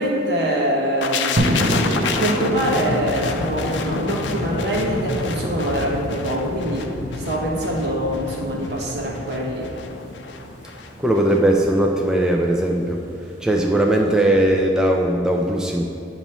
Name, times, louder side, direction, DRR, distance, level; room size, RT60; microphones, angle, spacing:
voice 1, 0.0-9.7, right 1 dB, 65° right, -3 dB, 1.2 m, -24 dB
sound 1, 1.0-10.9 11.2-11.4, left 4 dB, 90° left, 0.4 m, -29 dB
sound 2, 1.4-14.3, right 1 dB, 50° right, 0.8 m, -30 dB
voice 2, 11.0-13.0 13.4-15.9, right 1 dB, 5° right, 0 dB, 0.3 m, -19 dB
8.5 x 3.0 x 5.4 m, 2.6 s
head